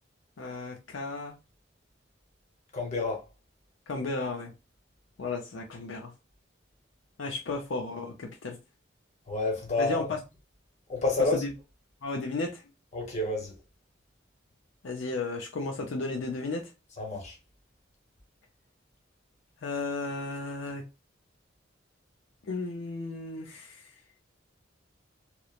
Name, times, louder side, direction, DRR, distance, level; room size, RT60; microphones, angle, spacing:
voice 1, 0.4-1.4 3.9-4.5 5.2-6.1 7.2-8.6 9.8-10.2 11.2-11.5 12.0-12.6 14.8-16.7 19.6-20.8 22.5-23.8, left 3 dB, 75° left, 0.5 m, -34 dB
voice 2, 2.7-3.2 9.3-10.1 10.9-11.4 12.9-13.5 17.0-17.4, left 2 dB, 35° left, 0.8 m, -29 dB
3.0 x 2.0 x 2.4 m
head